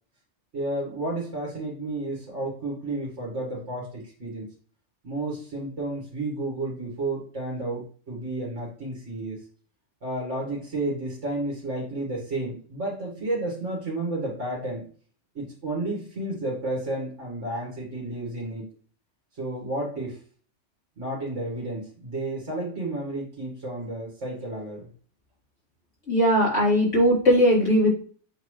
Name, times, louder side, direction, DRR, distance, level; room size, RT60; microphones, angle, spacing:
voice 1, 0.5-4.5 5.0-9.4 10.0-14.9 15.3-18.7 19.3-20.2 21.0-24.9, right 2 dB, 70° right, -3 dB, 2.3 m, -31 dB
voice 2, 26.1-27.9, equal, 75° left, -7 dB, 3.9 m, -19 dB
8.1 x 4.0 x 3.2 m, 0.43 s
omnidirectional pair, 1.2 m